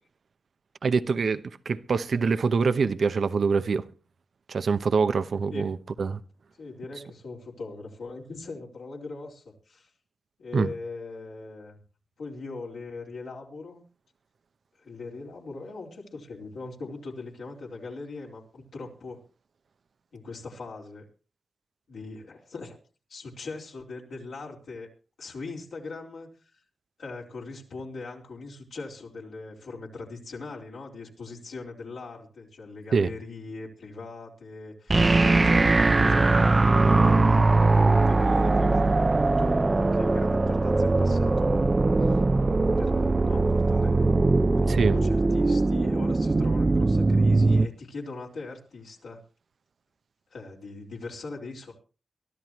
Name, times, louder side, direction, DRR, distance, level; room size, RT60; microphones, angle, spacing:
voice 1, 0.8-3.9 4.5-6.2 10.5-10.7 32.9-33.1 44.7-45.0, right 5 dB, 70° right, 0.8 m, -25 dB
voice 2, 6.6-9.9 10.4-11.8 12.2-13.8 14.8-19.2 20.1-21.0 21.9-22.8 23.1-24.9 25.2-26.3 27.0-36.5 36.9-41.5 42.0-42.2 42.8-44.0 44.6-49.2 50.3-51.7, left 3 dB, 85° left, 4.2 m, -40 dB
sound 1, 34.9-47.7, right 3 dB, 40° right, 0.7 m, -21 dB
23.5 x 13.0 x 3.1 m
cardioid pair, 45°, 0 cm